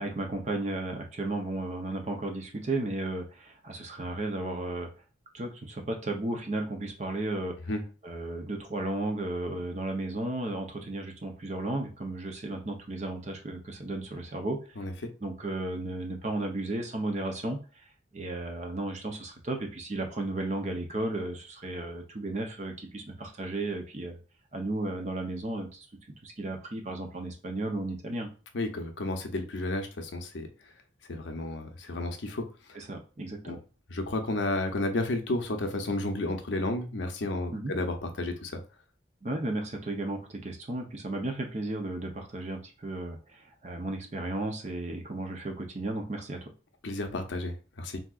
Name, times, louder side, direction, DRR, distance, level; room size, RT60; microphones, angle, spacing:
voice 1, 0.0-4.9 5.3-7.5 8.0-14.6 15.2-17.6 18.1-24.2 24.5-25.9 26.2-28.3 32.7-33.6 37.5-37.7 39.2-46.5, right 2 dB, 40° right, 3 dB, 0.6 m, -34 dB
voice 2, 14.8-15.1 28.5-30.5 31.1-32.4 33.5-33.6 33.9-38.6 46.8-48.0, left 2 dB, 80° left, 6 dB, 0.6 m, -32 dB
3.5 x 2.7 x 2.3 m, 0.35 s
head